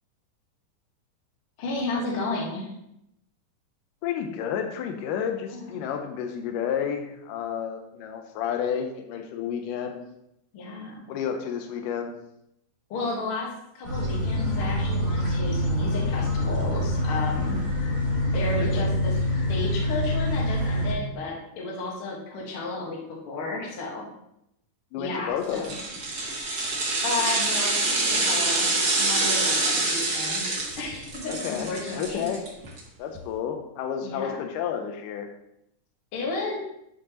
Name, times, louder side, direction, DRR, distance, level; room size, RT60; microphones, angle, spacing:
voice 1, 1.6-2.7 5.5-5.7 10.5-11.0 12.9-13.5 13.7-17.6 18.3-19.1 19.5-24.1 25.0-25.8 27.0-28.7 29.0-30.4 30.8-32.2 34.0-34.4 36.1-36.6, left 3 dB, 50° left, -2 dB, 2.0 m, -32 dB
voice 2, 4.0-10.0 11.1-12.1 18.6-18.9 24.9-25.8 29.7-29.8 31.3-32.5 33.0-35.3, left 8 dB, 85° left, 5 dB, 2.2 m, -31 dB
sound 1, 13.8-20.9, left 1 dB, 15° left, 1.2 m, -25 dB
sound 2, 25.5-32.8 33.1-33.2, right 2 dB, 40° right, 1.5 m, -26 dB
11.0 x 4.5 x 2.9 m, 0.80 s
omnidirectional pair, 3.7 m